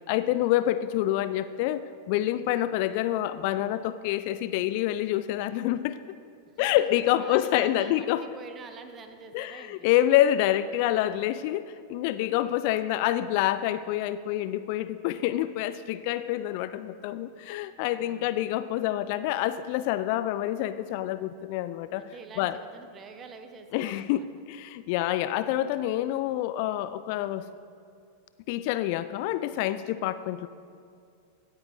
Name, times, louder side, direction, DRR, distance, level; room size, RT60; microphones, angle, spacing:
voice 1, 0.0-6.0 6.6-8.2 9.3-22.1 22.4-22.6 23.7-27.5 28.5-30.5, left 13 dB, 45° left, 13 dB, 0.3 m, -27 dB
voice 2, 6.4-9.9 18.0-18.4 22.0-24.3, right 5 dB, 25° right, 7 dB, 1.0 m, -46 dB
16.5 x 9.0 x 3.3 m, 2.3 s
figure-of-eight pair, 90°, 0 cm